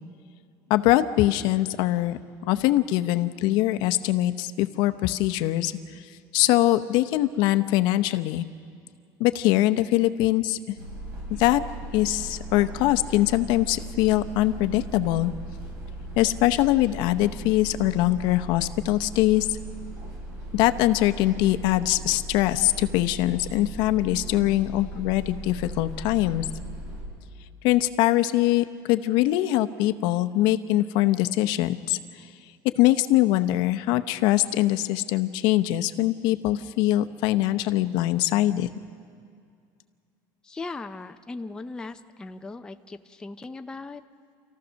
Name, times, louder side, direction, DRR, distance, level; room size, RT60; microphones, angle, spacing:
voice 1, 0.7-2.2 2.5-5.7 6.3-8.5 9.2-10.6 11.4-11.6 11.9-15.3 16.2-19.6 20.5-26.4 27.6-32.0 32.8-38.7, left 15 dB, 65° left, 10 dB, 0.8 m, -22 dB
sound 1, 10.8-27.0, right 1 dB, 70° right, 6.1 m, -38 dB
voice 2, 40.4-44.0, left 3 dB, 10° left, 7 dB, 0.5 m, -38 dB
29.0 x 14.5 x 6.4 m, 2.3 s
cardioid pair, 155°, 8 cm